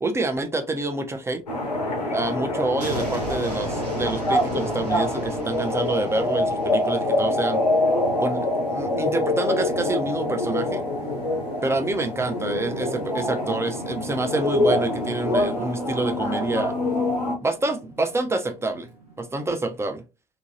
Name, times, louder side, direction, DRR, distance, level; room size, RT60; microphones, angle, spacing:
voice 1, 0.0-1.4 2.1-7.6 8.2-10.8 11.6-16.7 17.4-18.9 19.2-20.0, right 2 dB, 15° right, 0.5 m, -27 dB
sound 1, 1.4-19.6, equal, 85° right, 0.8 m, -39 dB
sound 2, 1.5-17.4, left 1 dB, 85° left, 0.6 m, -25 dB
2.7 x 2.6 x 2.6 m
figure-of-eight pair, 50°, 20 cm